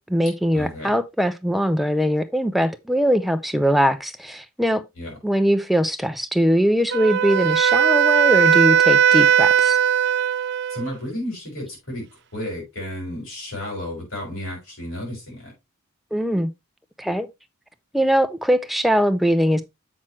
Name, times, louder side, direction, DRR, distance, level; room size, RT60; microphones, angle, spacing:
voice 1, 0.0-4.8 5.2-9.8 16.1-16.5 17.0-17.3 17.9-19.6, equal, ahead, 0.5 m, -21 dB
voice 2, 0.5-0.9 5.0-5.1 10.7-12.1 12.3-15.5, left 1 dB, 70° left, 5.9 m, -32 dB
Wind instrument woodwind instrument, 6.9-11.0, right 8 dB, 55° right, 0.4 m, -18 dB
7.5 x 6.1 x 3.2 m
head